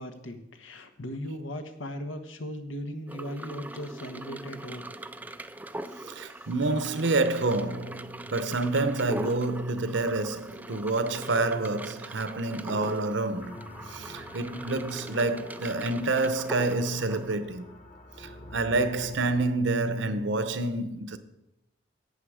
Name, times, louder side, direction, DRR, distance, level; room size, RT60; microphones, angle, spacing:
voice 1, 0.0-4.9 5.9-6.0 6.3-6.5, equal, 90° left, 1.3 m, -38 dB
sound 1, 3.1-17.4, right 1 dB, 10° right, 0.3 m, -41 dB
voice 2, 6.0-13.6 13.9-17.7 18.2-21.2, right 2 dB, 65° right, 0.8 m, -28 dB
sound 2, 13.4-19.7, left 1 dB, 35° left, 1.4 m, -47 dB
11.5 x 8.5 x 4.9 m
head